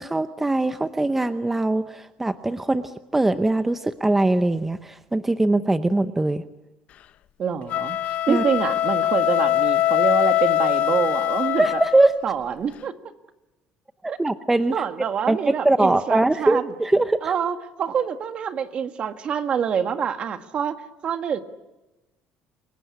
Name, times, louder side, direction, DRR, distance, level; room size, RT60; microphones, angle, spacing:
voice 1, 0.0-6.4 8.3-8.4 11.6-12.1 14.0-14.7 15.3-17.3, right 2 dB, 10° right, 10 dB, 0.8 m, -21 dB
voice 2, 7.4-11.8 12.2-12.9 14.1-14.2 14.7-16.7 17.2-20.8 21.0-21.4, right 7 dB, 45° right, 8 dB, 1.7 m, -26 dB
sound 1, 7.6-12.2, left 13 dB, 55° left, 1.0 m, -22 dB
29.0 x 18.0 x 9.7 m, 1.1 s
cardioid pair, 120°, 3 cm